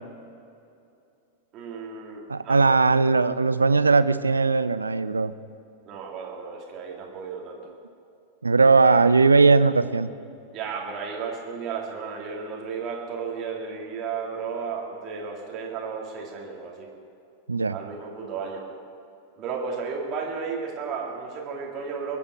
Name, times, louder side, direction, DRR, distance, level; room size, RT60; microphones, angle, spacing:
voice 1, 1.5-2.6 2.9-3.3 5.8-7.7 8.8-9.1 10.5-16.9 17.7-18.7 19.4-22.2, right 5 dB, 35° right, -1 dB, 2.6 m, -34 dB
voice 2, 2.3-5.3 8.4-10.1 17.5-17.8, right 4 dB, 80° right, 14 dB, 0.5 m, -19 dB
22.5 x 8.7 x 6.3 m, 2.6 s
figure-of-eight pair, 90°, 0 cm